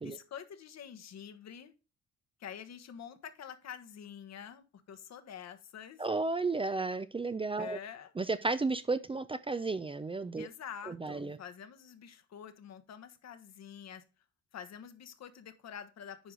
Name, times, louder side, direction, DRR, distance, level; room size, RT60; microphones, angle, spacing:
voice 1, 0.0-1.7 2.4-6.1 7.6-8.1 10.4-14.0 14.5-16.3, left 8 dB, 60° left, 10 dB, 1.2 m, -47 dB
voice 2, 6.0-7.8 8.2-10.5 10.9-11.4, right 3 dB, 20° right, 13 dB, 0.4 m, -33 dB
9.2 x 4.8 x 3.8 m, 0.31 s
cardioid pair, 90°, 30 cm